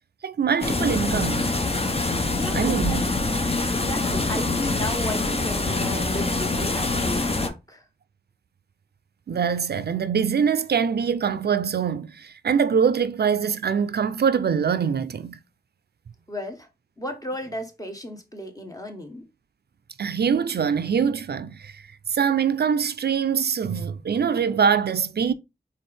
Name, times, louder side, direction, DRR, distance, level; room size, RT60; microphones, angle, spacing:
voice 1, 0.2-1.4 2.5-3.0 9.3-15.4 20.0-21.8 22.1-25.3, right 7 dB, 75° right, 0.4 m, -23 dB
sound 1, 0.6-7.5, left 2 dB, 35° left, 0.8 m, -25 dB
voice 2, 2.3-3.1 3.7-7.8 16.3-16.7 17.0-19.3, left 1 dB, 20° left, 1.3 m, -34 dB
4.3 x 3.5 x 3.4 m
wide cardioid pair, 55°, 17 cm